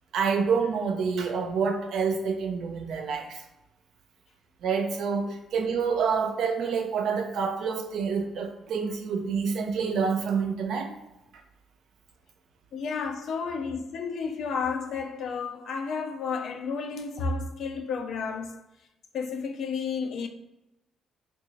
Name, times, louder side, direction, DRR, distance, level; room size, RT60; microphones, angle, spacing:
voice 1, 0.1-3.4 4.6-10.9, right 5 dB, 75° right, 0.5 m, -27 dB
voice 2, 12.7-18.6 19.1-20.3, left 5 dB, 65° left, 0.4 m, -32 dB
2.9 x 2.3 x 3.9 m
cardioid pair, 90°, 0 cm